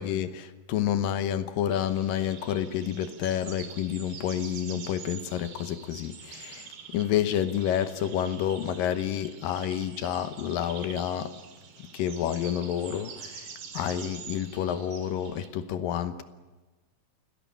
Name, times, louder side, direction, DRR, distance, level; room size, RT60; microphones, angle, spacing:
voice 1, 0.0-11.3 11.8-13.5 13.7-16.2, left 10 dB, 75° left, 2.7 m, -29 dB
sound 1, 1.7-15.5, right 7 dB, 85° right, 4.1 m, -46 dB
27.0 x 17.5 x 8.5 m
omnidirectional pair, 4.2 m